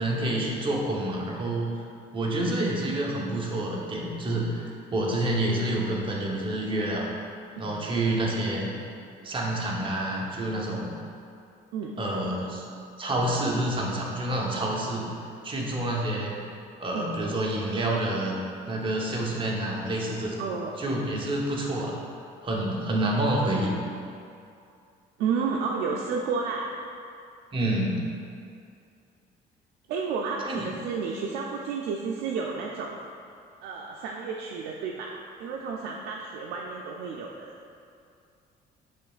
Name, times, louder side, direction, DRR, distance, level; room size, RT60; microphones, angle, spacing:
voice 1, 0.0-1.7 2.1-7.1 7.6-8.7 9.2-10.9 12.0-12.6 13.0-15.1 15.4-16.4 16.8-18.4 18.7-20.4 20.8-22.0 22.4-23.7 27.5-28.0 30.4-30.6, right 1 dB, 30° right, -2 dB, 0.8 m, -28 dB
voice 2, 20.4-20.7 25.2-26.8 29.9-33.0 33.6-37.6, right 5 dB, 80° right, -1 dB, 0.4 m, -31 dB
7.4 x 3.0 x 2.4 m, 2.4 s
cardioid pair, 110°, 17 cm